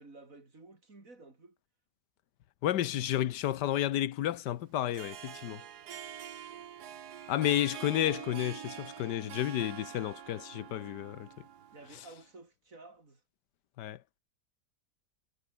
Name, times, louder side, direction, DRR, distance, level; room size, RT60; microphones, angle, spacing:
voice 1, 0.0-1.6 11.7-13.2, right 3 dB, 50° right, 4.4 m, -53 dB
voice 2, 2.6-5.6 7.3-11.3 11.9-12.1 13.8-14.0, left 12 dB, 90° left, 1.5 m, -31 dB
Harp, 4.8-12.1, right 9 dB, 70° right, 1.6 m, -45 dB
omnidirectional pair, 1.8 m